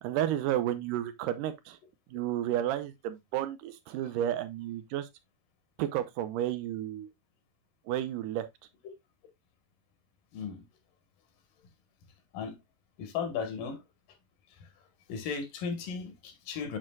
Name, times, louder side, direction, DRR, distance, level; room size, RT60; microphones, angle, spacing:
voice 1, 0.0-1.8 2.1-5.1 5.8-7.1 7.9-8.5, right 12 dB, 80° right, 2.1 m, -32 dB
voice 2, 13.0-13.8 15.1-16.8, left 6 dB, 70° left, 2.8 m, -35 dB
7.5 x 6.2 x 2.3 m
omnidirectional pair, 4.0 m